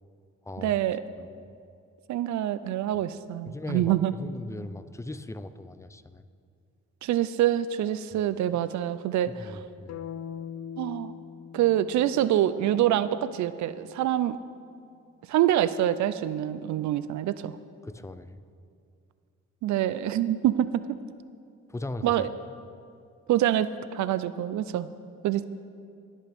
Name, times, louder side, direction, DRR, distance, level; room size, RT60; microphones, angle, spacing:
voice 1, 0.6-1.0 2.1-4.1 7.0-9.3 10.8-11.2 11.5-14.4 15.3-17.6 19.6-20.8 22.0-22.3 23.3-24.9 25.2-25.4, right 12 dB, 70° right, 14 dB, 0.5 m, -26 dB
voice 2, 1.2-1.5 3.4-6.2 9.3-10.0 17.8-18.4 21.7-22.3, left 2 dB, 10° left, 12 dB, 0.5 m, -38 dB
sound 1, 9.9-13.9, left 8 dB, 60° left, 0.6 m, -42 dB
20.5 x 8.5 x 3.5 m, 2.4 s
cardioid pair, 90°, 30 cm